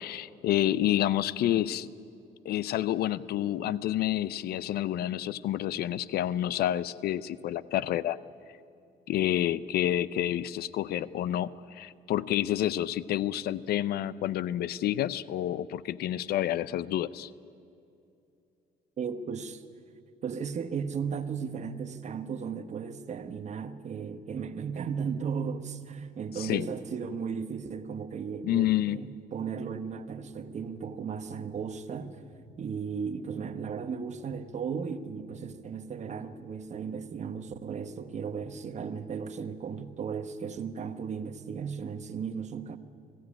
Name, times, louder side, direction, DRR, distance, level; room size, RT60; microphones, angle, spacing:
voice 1, 0.0-1.9 2.4-8.2 9.1-17.3 26.4-26.7 28.4-29.0, left 12 dB, 65° left, 0.6 m, -29 dB
voice 2, 19.0-19.6 20.2-32.2 32.6-42.8, right 6 dB, 45° right, 1.3 m, -35 dB
sound 1, 30.2-30.6 31.2-31.6 32.2-32.6 33.2-33.6 34.2-34.6 35.2-35.6 36.2-36.6 37.2-37.6 38.2-38.6, equal, 20° left, 2.5 m, -55 dB
20.5 x 16.0 x 9.9 m
cardioid pair, 110°, 17 cm